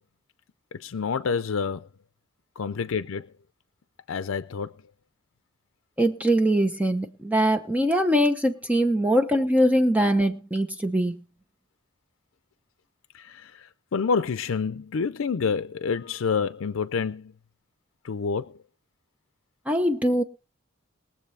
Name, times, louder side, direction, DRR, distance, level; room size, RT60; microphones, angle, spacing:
voice 1, 0.7-1.9 2.6-3.3 4.1-4.7 13.1-17.3 18.0-18.5, left 5 dB, 80° left, 0.5 m, -28 dB
voice 2, 6.0-11.2 19.7-20.2, equal, 5° right, 0.8 m, -22 dB
22.0 x 7.4 x 3.3 m
head